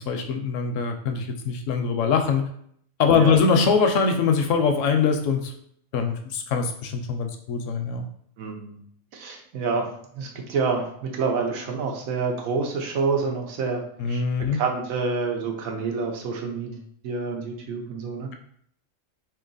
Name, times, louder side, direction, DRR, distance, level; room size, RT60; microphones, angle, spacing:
voice 1, 0.0-2.4 3.0-5.5 5.9-8.1 14.0-14.6, left 5 dB, 75° left, 6 dB, 0.9 m, -22 dB
voice 2, 8.4-8.8 9.1-9.9 10.1-13.8 14.1-14.2 14.5-18.3, right 4 dB, 90° right, 2 dB, 1.1 m, -28 dB
2.9 x 2.8 x 3.9 m, 0.67 s
omnidirectional pair, 1.4 m